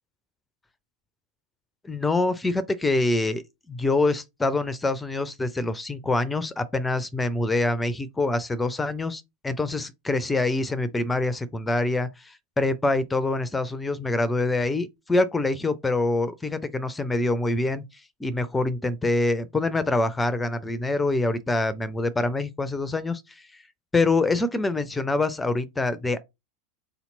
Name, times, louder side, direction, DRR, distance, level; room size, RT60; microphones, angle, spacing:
voice 1, 1.8-17.8 18.2-23.6 23.9-26.2, left 2 dB, 10° left, 0.4 m, -25 dB
3.9 x 2.9 x 3.9 m
figure-of-eight pair, 85°, 0 cm